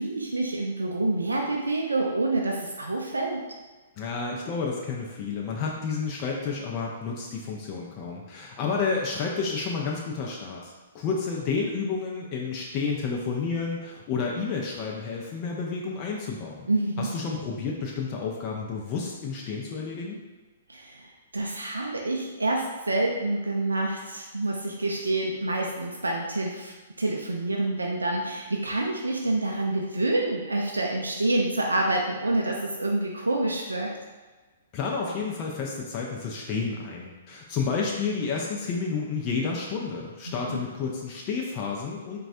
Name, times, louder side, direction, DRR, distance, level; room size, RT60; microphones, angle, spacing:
voice 1, 0.0-3.4 16.7-17.1 20.7-33.9 40.3-40.6, right 2 dB, 75° right, 0 dB, 0.3 m, -27 dB
voice 2, 4.0-16.7 17.0-20.2 34.7-42.2, left 5 dB, 30° left, -2 dB, 0.4 m, -30 dB
4.0 x 2.2 x 2.6 m, 1.3 s
figure-of-eight pair, 115°, 0 cm